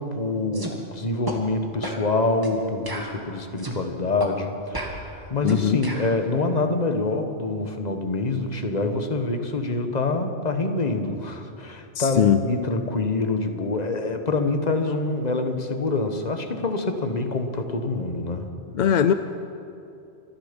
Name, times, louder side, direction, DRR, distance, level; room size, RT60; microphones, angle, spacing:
voice 1, 0.0-18.5, left 3 dB, 35° left, 6 dB, 1.2 m, -26 dB
sound 1, 0.5-0.7 1.3-1.4 1.8-2.0 2.4-2.6 2.9-3.8 4.2-4.3 4.7-6.1, right 1 dB, 20° right, 1.6 m, -34 dB
voice 2, 5.4-5.8 12.0-12.4 18.7-19.1, left 9 dB, 55° left, 10 dB, 0.5 m, -20 dB
26.0 x 10.0 x 5.2 m, 2.6 s
omnidirectional pair, 1.2 m